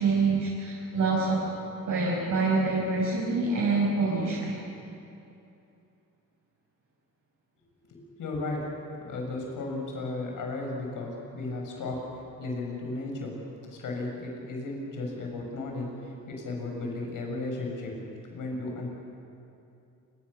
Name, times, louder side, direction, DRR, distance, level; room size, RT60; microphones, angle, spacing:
voice 1, 0.0-1.4 1.9-4.5, right 3 dB, 70° right, -6 dB, 6.1 m, -26 dB
voice 2, 7.9-8.6 9.0-12.0 12.4-13.4 13.7-17.9 18.3-18.9, left 2 dB, 75° left, 0 dB, 7.1 m, -34 dB
28.5 x 24.0 x 6.9 m, 2.7 s
cardioid pair, 75°, 32 cm